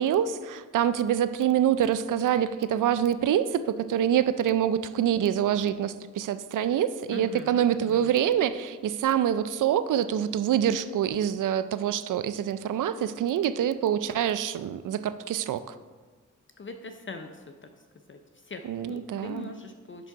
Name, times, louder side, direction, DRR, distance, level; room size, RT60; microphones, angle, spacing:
voice 1, 0.0-15.6 18.7-19.5, right 10 dB, 75° right, 13 dB, 0.5 m, -26 dB
voice 2, 7.1-8.2 16.6-17.7 18.1-20.1, left 3 dB, 40° left, 6 dB, 0.6 m, -42 dB
10.0 x 3.6 x 4.6 m, 1.4 s
cardioid pair, 50°, 32 cm